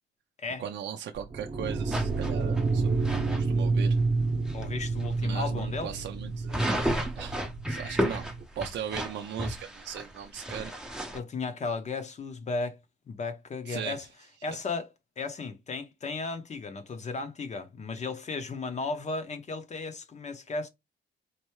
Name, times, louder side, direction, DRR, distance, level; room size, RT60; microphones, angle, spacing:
voice 1, 0.6-2.9 3.4-4.0 5.2-6.6 7.2-7.4 7.7-8.3 8.6-10.7 13.7-14.0, right 9 dB, 65° right, 0.5 m, -38 dB
sound 1, 1.2-8.4, right 3 dB, 30° right, 0.8 m, -29 dB
sound 2, 1.9-3.4 4.0-4.1 4.5-4.6 5.0-5.1 6.5-11.2, equal, 5° right, 0.6 m, -33 dB
voice 2, 4.5-5.9 11.1-12.8 13.1-14.1 14.4-14.9 15.2-20.7, left 3 dB, 35° left, 0.7 m, -35 dB
4.4 x 2.6 x 3.1 m
cardioid pair, 135°, 20 cm